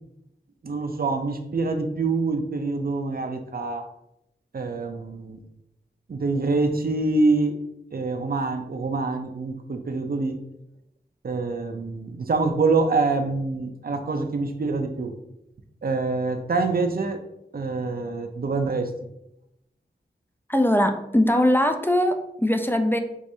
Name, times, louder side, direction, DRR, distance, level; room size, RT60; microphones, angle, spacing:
voice 1, 0.6-3.9 4.5-5.4 6.1-7.6 7.9-10.4 11.2-15.2 15.8-17.2 17.5-18.9, right 3 dB, 55° right, 6 dB, 0.5 m, -25 dB
voice 2, 20.5-23.0, left 1 dB, 10° left, 6 dB, 0.3 m, -21 dB
4.7 x 2.5 x 2.7 m, 0.83 s
wide cardioid pair, 50°, 19 cm